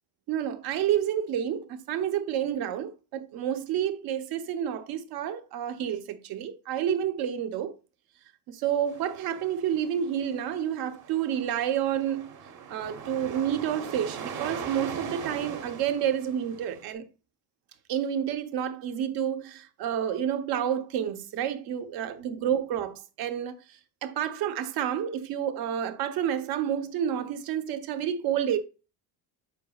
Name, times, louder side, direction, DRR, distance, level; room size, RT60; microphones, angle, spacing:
voice 1, 0.3-7.7 8.5-12.3 12.7-17.0 17.9-23.6 24.0-28.6, right 9 dB, 70° right, 0.9 m, -29 dB
sound 1, 8.9-16.9, right 6 dB, 50° right, 1.0 m, -40 dB
8.1 x 4.9 x 2.3 m
cardioid pair, 165°, 39 cm